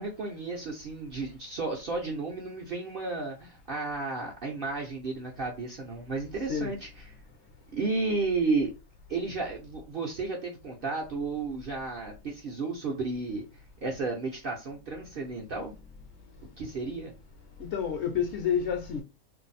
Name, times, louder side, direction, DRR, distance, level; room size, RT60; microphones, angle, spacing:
voice 1, 0.0-6.9 7.7-8.7 9.1-13.4 13.8-15.7 16.6-17.1, right 3 dB, 55° right, 0.6 m, -32 dB
voice 2, 17.6-19.0, left 7 dB, 65° left, 0.8 m, -30 dB
2.6 x 2.0 x 3.9 m
omnidirectional pair, 1.5 m